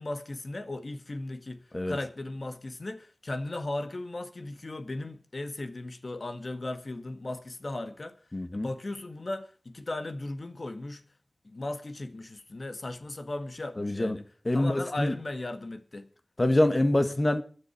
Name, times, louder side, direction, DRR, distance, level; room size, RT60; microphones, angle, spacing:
voice 1, 0.0-8.2 8.5-11.0 11.4-14.2 14.5-16.1, left 2 dB, 60° left, 1.7 m, -37 dB
voice 2, 8.3-8.7 13.8-14.2 14.5-15.2 16.4-17.4, left 1 dB, 40° left, 1.8 m, -25 dB
15.5 x 10.5 x 5.9 m
wide cardioid pair, 65°, 0 cm